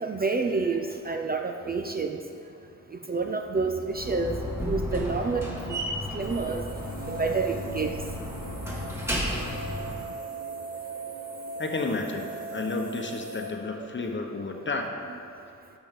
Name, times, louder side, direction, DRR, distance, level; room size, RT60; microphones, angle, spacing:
voice 1, 0.0-2.2 2.9-4.4 4.6-5.8 6.1-6.6 7.1-8.0 13.8-13.9, right 4 dB, 30° right, 4 dB, 0.5 m, -28 dB
Slam, 3.9-10.1, equal, 10° right, 2.2 m, -33 dB
sound 1, 6.3-13.5, right 2 dB, 90° right, 1.7 m, -39 dB
voice 2, 11.6-15.0, left 3 dB, 35° left, 3 dB, 1.0 m, -31 dB
12.0 x 6.2 x 3.7 m, 2.6 s
cardioid pair, 75°, 33 cm